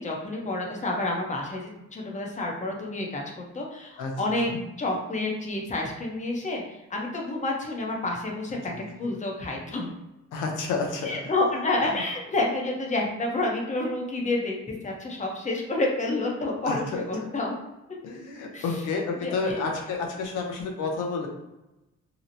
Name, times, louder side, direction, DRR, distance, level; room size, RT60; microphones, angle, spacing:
voice 1, 0.0-4.5 4.8-8.7 9.0-9.9 11.1-17.6 18.5-18.6 19.2-19.7, left 2 dB, 25° left, 0 dB, 0.7 m, -29 dB
voice 2, 10.3-11.3 11.9-12.0 16.6-17.0 18.0-21.3, left 4 dB, 85° left, 1 dB, 0.7 m, -30 dB
2.9 x 2.0 x 2.6 m, 0.99 s
cardioid pair, 90°, 30 cm